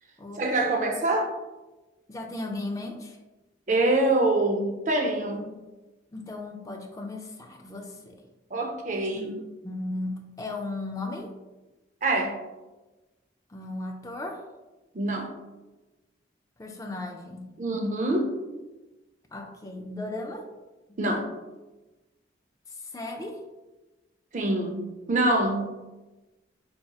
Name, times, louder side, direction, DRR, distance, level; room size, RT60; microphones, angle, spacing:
voice 1, 0.4-1.3 3.7-5.5 8.5-9.4 12.0-12.4 14.9-15.3 17.6-18.4 21.0-21.3 24.3-25.7, right 2 dB, 40° right, 2 dB, 0.5 m, -25 dB
voice 2, 2.1-3.2 6.1-8.2 9.1-11.3 13.5-14.4 16.6-17.5 19.3-20.5 20.9-21.0 22.8-23.4, left 2 dB, 15° left, 2 dB, 0.3 m, -36 dB
4.2 x 2.8 x 2.3 m, 1.1 s
head